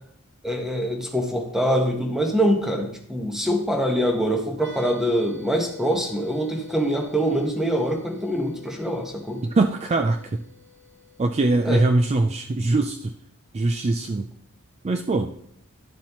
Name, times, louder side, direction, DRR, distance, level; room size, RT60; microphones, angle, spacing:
voice 1, 0.4-9.4 11.6-11.8, equal, ahead, 2 dB, 1.1 m, -24 dB
sound 1, 4.5-12.0, left 5 dB, 55° right, 1.0 m, -47 dB
voice 2, 9.4-10.4 11.2-13.1 13.5-14.3 14.8-15.3, right 2 dB, 30° right, 6 dB, 0.4 m, -22 dB
11.5 x 7.2 x 3.0 m, 0.68 s
head